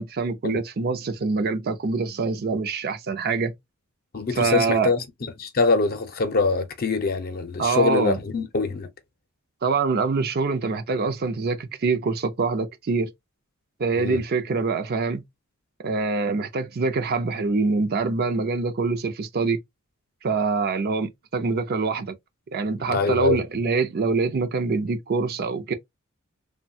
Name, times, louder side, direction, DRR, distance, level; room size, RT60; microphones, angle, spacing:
voice 1, 0.0-3.5 4.4-4.9 7.6-8.2 9.6-13.1 13.8-15.2 15.8-19.6 20.2-22.1 22.5-25.7, right 4 dB, 50° right, 0.5 m, -25 dB
voice 2, 4.1-8.9 13.9-14.2 22.9-23.4, left 3 dB, 45° left, 0.6 m, -24 dB
3.1 x 2.2 x 2.6 m
head